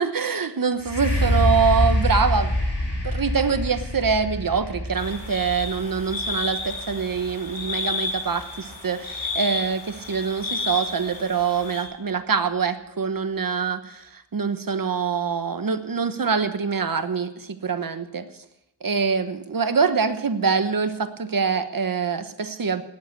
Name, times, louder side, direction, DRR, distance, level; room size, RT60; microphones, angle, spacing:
voice 1, 0.0-2.5 3.0-14.0 14.3-17.3 17.6-18.3 18.8-22.8, right 5 dB, 50° right, 10 dB, 1.2 m, -24 dB
sound 1, 0.8-8.6 9.2-9.3, left 1 dB, 30° left, 3.6 m, -26 dB
sound 2, 5.0-11.8, left 3 dB, 85° left, 2.9 m, -32 dB
18.5 x 7.9 x 7.4 m, 0.85 s
wide cardioid pair, 105°, 43 cm